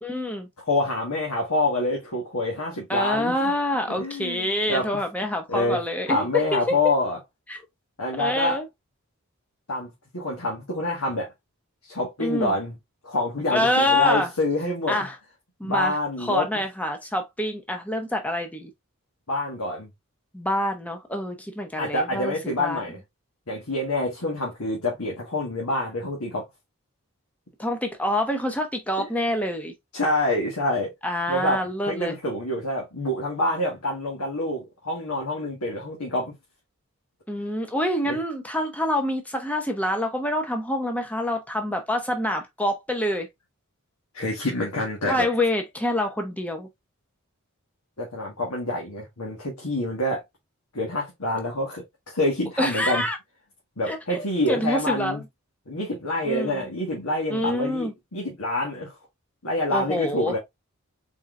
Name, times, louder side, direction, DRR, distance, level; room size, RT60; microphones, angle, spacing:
voice 1, 0.0-0.5 2.9-6.9 7.5-7.6 8.2-8.7 12.2-12.6 13.5-14.3 14.9-15.2 15.6-18.7 20.3-22.8 27.6-29.7 31.0-32.2 37.3-43.3 45.0-46.7 52.6-53.2 53.9-55.2 56.2-56.7 57.3-57.9 59.7-60.4, left 1 dB, 5° left, 0.8 m, -26 dB
voice 2, 0.6-3.5 3.9-4.9 5.5-5.8 6.1-7.2 8.0-8.6 9.7-11.3 11.9-12.8 13.0-15.1 15.6-16.5 19.3-19.9 21.8-23.0 23.5-26.5 29.0-29.1 29.9-30.9 31.3-36.3 38.1-38.2 44.1-45.3 48.0-50.2 50.7-53.0 53.8-55.2 55.7-59.0 59.4-60.4, left 1 dB, 85° left, 1.6 m, -27 dB
4.4 x 3.8 x 2.5 m
head